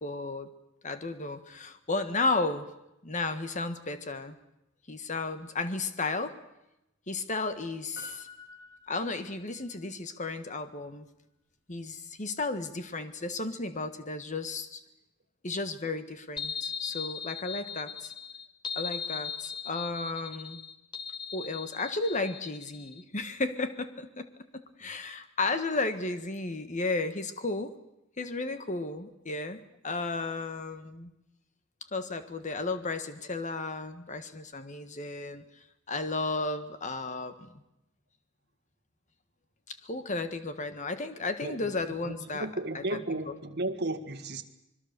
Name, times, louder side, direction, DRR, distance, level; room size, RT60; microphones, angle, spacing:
voice 1, 0.0-0.5 0.8-2.7 3.0-4.3 4.9-6.4 7.1-8.3 8.9-11.1 11.7-14.8 15.4-18.1 18.7-20.6 21.3-24.3 24.5-27.7 28.2-31.1 31.9-35.4 35.9-37.6 39.7-42.5 42.7-43.3, left 3 dB, 40° left, 9 dB, 1.6 m, -33 dB
Piano, 8.0-9.7 10.1-10.2, left 2 dB, 60° left, 7.6 m, -49 dB
sound 1, 16.4-23.0, left 6 dB, 25° left, 1.2 m, -38 dB
voice 2, 42.3-44.4, right 2 dB, 55° right, 8 dB, 1.8 m, -33 dB
25.5 x 22.5 x 6.8 m, 0.90 s
head